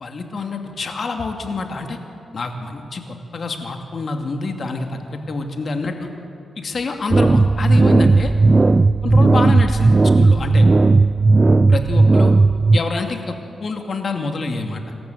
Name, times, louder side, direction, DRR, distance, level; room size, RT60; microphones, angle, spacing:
voice 1, 0.0-2.0 2.3-6.1 6.6-8.3 9.0-10.7 11.7-12.3 12.7-14.8, left 3 dB, 55° left, 4 dB, 2.4 m, -26 dB
sound 1, 7.1-12.8, right 3 dB, 30° right, 0.5 m, -14 dB
27.0 x 14.0 x 7.9 m, 2.6 s
cardioid pair, 85°, 0 cm